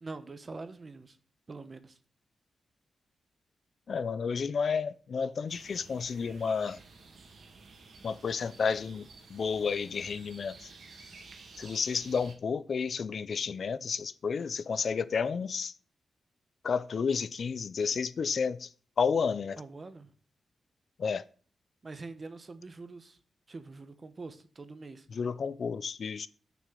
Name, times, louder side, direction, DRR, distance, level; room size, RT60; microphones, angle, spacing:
voice 1, 0.0-1.2 1.5-2.0 19.6-20.1 21.8-23.2 23.5-25.1, right 3 dB, 30° right, 1.0 m, -44 dB
voice 2, 3.9-6.8 8.0-10.6 11.6-15.7 16.6-18.7 19.0-19.6 21.0-21.2 25.1-26.3, left 5 dB, 50° left, 0.4 m, -31 dB
sound 1, 5.5-12.3, right 3 dB, 60° right, 2.0 m, -52 dB
6.9 x 6.2 x 7.6 m
wide cardioid pair, 150°, 0 cm